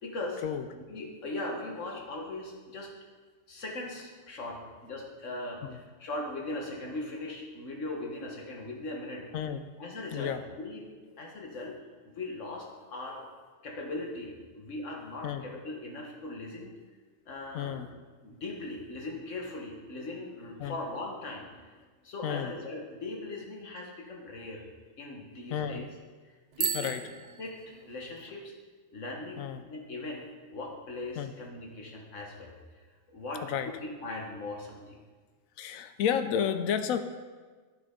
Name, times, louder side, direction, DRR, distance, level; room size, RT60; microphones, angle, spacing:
voice 1, 0.0-0.4 0.7-2.9 3.5-9.3 9.8-10.8 11.2-11.8 12.1-13.2 13.6-16.7 17.3-17.9 18.2-21.7 22.0-24.7 25.0-25.9 26.2-26.9 27.4-28.5 28.9-29.4 29.7-32.8 33.1-35.0, left 2 dB, 65° left, 0 dB, 1.6 m, -39 dB
voice 2, 17.5-17.9 20.6-20.8 22.2-22.5 25.5-25.9 26.7-27.0 29.4-29.6 31.2-31.3 33.4-33.7 35.6-37.0, left 8 dB, 80° left, 10 dB, 1.0 m, -31 dB
Bicycle bell, 26.5-28.3, right 7 dB, 70° right, 0.4 m, -35 dB
10.0 x 6.2 x 3.7 m, 1.4 s
omnidirectional pair, 1.4 m